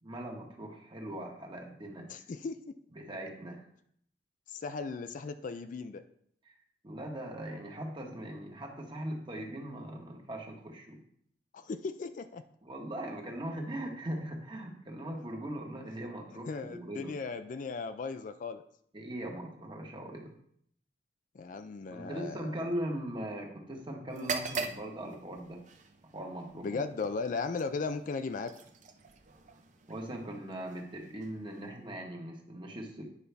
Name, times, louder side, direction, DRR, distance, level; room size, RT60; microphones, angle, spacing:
voice 1, 0.0-2.2 2.9-3.7 6.4-6.5 6.8-11.0 12.6-17.1 18.9-20.3 21.9-25.6 26.1-26.8 29.9-33.0, right 1 dB, 30° right, 1 dB, 1.3 m, -40 dB
voice 2, 2.1-2.7 4.5-6.0 11.5-12.4 16.5-18.6 21.3-22.7 26.6-28.6, left 4 dB, 50° left, 10 dB, 0.4 m, -37 dB
sound 1, 24.1-31.9, right 4 dB, 45° right, 0.6 m, -43 dB
9.5 x 5.5 x 3.4 m, 0.67 s
head